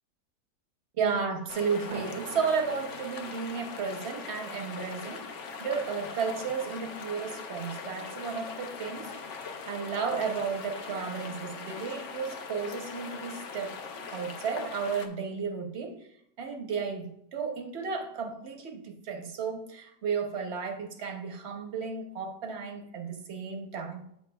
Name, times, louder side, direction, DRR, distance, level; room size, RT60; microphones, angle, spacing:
voice 1, 1.0-13.8 14.1-16.1 16.4-24.1, right 5 dB, 55° right, 4 dB, 0.8 m, -33 dB
sound 1, 1.5-15.1, left 5 dB, 60° left, 0.8 m, -41 dB
sound 2, 1.9-6.9, right 8 dB, 75° right, 1.1 m, -49 dB
8.2 x 5.8 x 2.3 m, 0.73 s
omnidirectional pair, 1.8 m